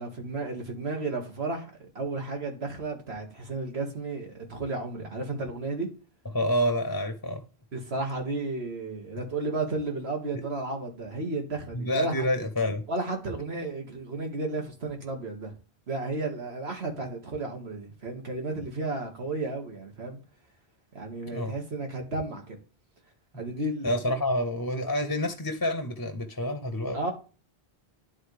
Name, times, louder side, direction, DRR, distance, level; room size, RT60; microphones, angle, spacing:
voice 1, 0.0-5.9 7.7-12.3 12.9-15.5 15.9-20.2 20.9-22.6 23.4-23.9 26.9-27.1, right 2 dB, 85° right, 2.1 m, -33 dB
voice 2, 6.3-7.4 11.7-12.8 21.3-21.5 23.3-23.4 23.8-27.0, left 1 dB, 20° left, 0.7 m, -28 dB
11.0 x 4.0 x 3.3 m
omnidirectional pair, 1.0 m